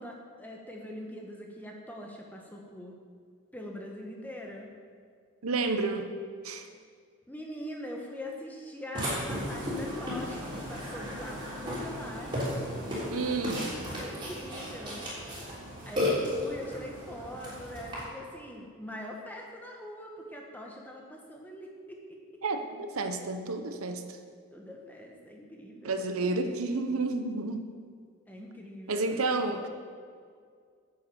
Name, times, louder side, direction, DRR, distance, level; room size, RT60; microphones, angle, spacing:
voice 1, 0.0-3.0 3.5-4.7 7.3-12.5 13.9-15.0 15.9-22.0 24.5-26.3 28.3-29.2, left 1 dB, 10° left, 0 dB, 1.2 m, -43 dB
voice 2, 5.4-6.1 6.4-6.7 13.1-13.7 22.4-24.0 25.8-27.7 28.9-29.7, right 3 dB, 90° right, 7 dB, 0.9 m, -30 dB
Burping eructation, 8.9-18.0, left 1 dB, 25° right, 3.4 m, -34 dB
9.6 x 7.6 x 7.1 m, 2.1 s
head